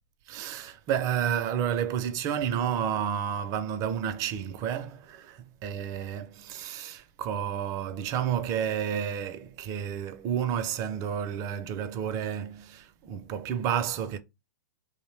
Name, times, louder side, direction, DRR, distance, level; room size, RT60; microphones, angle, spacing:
voice 1, 0.3-14.2, right 9 dB, 35° right, 0.4 m, -31 dB
2.6 x 2.0 x 3.1 m
hypercardioid pair, 115°, 10 cm